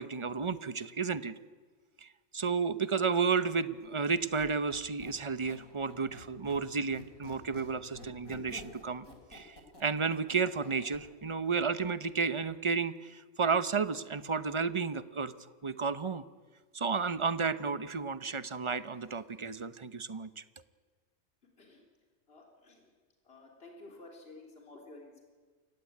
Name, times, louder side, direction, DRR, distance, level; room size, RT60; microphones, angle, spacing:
voice 1, 0.0-1.4 2.0-2.1 2.3-9.0 9.3-15.3 15.6-16.2 16.7-20.4, right 5 dB, 30° right, 13 dB, 0.7 m, -32 dB
Squeak, 4.1-6.7 6.9-11.0, left 2 dB, 85° left, 4.3 m, -51 dB
voice 2, 22.3-22.9 23.2-25.2, left 2 dB, 45° left, 0 dB, 3.8 m, -52 dB
28.5 x 16.0 x 9.6 m, 1.5 s
omnidirectional pair, 1.4 m